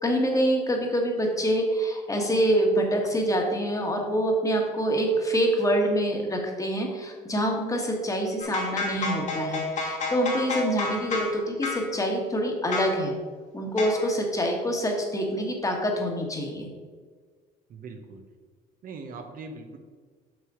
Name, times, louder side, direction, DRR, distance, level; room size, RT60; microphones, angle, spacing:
voice 1, 0.0-13.1 13.5-16.7, equal, 20° left, 2 dB, 1.5 m, -26 dB
sound 1, 8.4-11.4 11.6-11.9 12.7-13.0 13.8-14.1, left 3 dB, 45° left, 1.7 m, -30 dB
voice 2, 17.7-18.3 18.8-19.8, right 4 dB, 55° right, 4 dB, 1.0 m, -41 dB
6.3 x 6.2 x 4.9 m, 1.5 s
cardioid pair, 110°, 17 cm